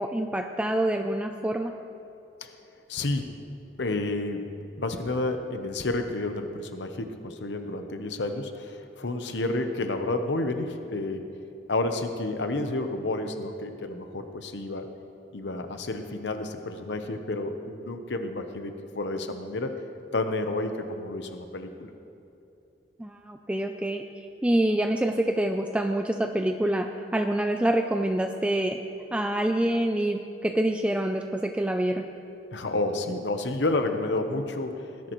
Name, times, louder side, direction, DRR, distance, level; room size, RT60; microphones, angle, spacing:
voice 1, 0.0-1.7 23.0-28.8 29.1-32.1, right 1 dB, 5° right, 5 dB, 0.4 m, -26 dB
voice 2, 2.9-3.3 3.8-4.4 4.8-11.3 11.7-14.9 15.3-19.7 20.1-21.9 32.5-35.1, left 2 dB, 90° left, 7 dB, 0.8 m, -30 dB
20.0 x 10.5 x 3.1 m, 2.8 s
head